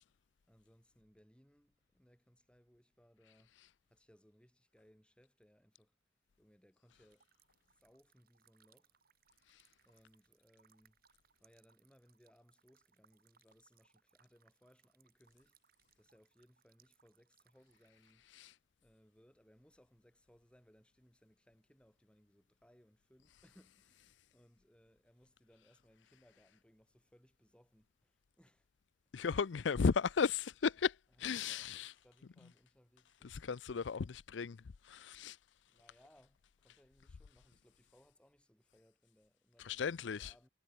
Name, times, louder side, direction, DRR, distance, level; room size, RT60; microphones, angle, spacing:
voice 1, 0.5-3.5 3.9-5.9 6.4-7.3 7.7-8.9 9.8-11.0 11.4-15.6 16.0-18.2 18.8-28.7 31.1-33.6 35.7-40.5, equal, 5° left, 6.0 m, -68 dB
sound 1, 7.1-18.1, right 8 dB, 55° right, 6.5 m, -74 dB
voice 2, 29.1-31.9 33.2-34.6 34.9-35.4 39.6-40.3, left 5 dB, 80° left, 0.5 m, -35 dB
head